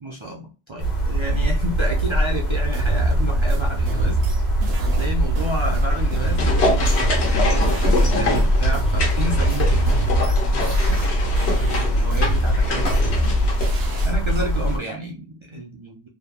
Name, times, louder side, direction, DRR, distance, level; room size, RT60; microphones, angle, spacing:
voice 1, 0.0-4.2 4.9-10.7 11.6-13.2 14.0-16.1, right 1 dB, 45° right, -2 dB, 0.4 m, -31 dB
sound 1, 0.8-14.8, right 1 dB, 45° left, 1.1 m, -21 dB
sound 2, 2.7-8.1 8.4-11.1 11.4-14.4, equal, 70° right, 0.8 m, -27 dB
sound 3, 5.8-14.4 14.7-14.8, left 3 dB, 85° left, 1.1 m, -27 dB
3.0 x 2.0 x 2.2 m, 0.34 s
omnidirectional pair, 1.1 m